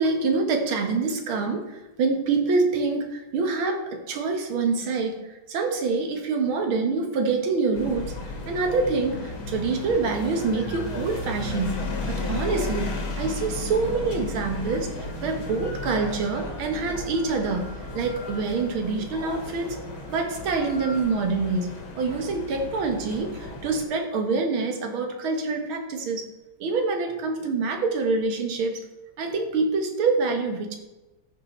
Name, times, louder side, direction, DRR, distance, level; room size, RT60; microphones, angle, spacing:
voice 1, 0.0-5.2 5.5-8.1 8.5-19.8 20.1-26.3 26.6-28.8 29.2-30.8, right 4 dB, 70° right, 4 dB, 2.1 m, -26 dB
sound 1, 7.7-23.8, left 2 dB, 65° left, 2.7 m, -34 dB
13.5 x 5.8 x 4.3 m, 1.1 s
omnidirectional pair, 2.4 m